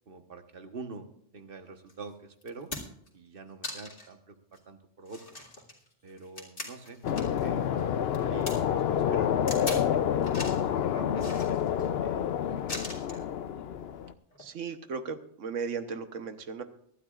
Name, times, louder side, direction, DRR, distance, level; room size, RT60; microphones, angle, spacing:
voice 1, 0.1-1.1 1.3-2.7 3.1-4.3 4.7-5.4 6.0-7.7 8.0-11.7 12.0-12.3 12.7-13.3, right 4 dB, 50° right, 7 dB, 1.3 m, -46 dB
sound 1, 1.9-2.0 2.4-3.1 3.6-4.1 4.5-4.6 5.1-7.5 7.8-8.5 9.5-9.9 10.2-10.7 11.2-11.9 12.7-13.2 14.3-14.5, left 2 dB, 45° left, 2.4 m, -40 dB
sound 2, 7.0-14.1, left 9 dB, 60° left, 0.8 m, -28 dB
voice 2, 14.4-16.6, right 5 dB, 90° right, 9 dB, 1.3 m, -36 dB
24.0 x 12.0 x 2.4 m, 0.68 s
omnidirectional pair, 1.2 m